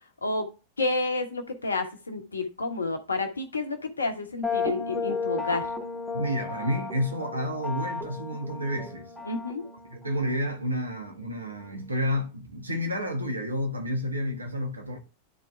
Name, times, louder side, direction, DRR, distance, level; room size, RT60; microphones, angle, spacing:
voice 1, 0.8-5.7 9.3-9.6, left 3 dB, 75° left, 1.3 m, -30 dB
sound 1, 4.4-12.1, left 4 dB, ahead, 2.4 m, -35 dB
voice 2, 6.1-9.1 9.9-15.0, equal, 80° right, 1.6 m, -30 dB
11.0 x 4.6 x 3.3 m
figure-of-eight pair, 90°, 0 cm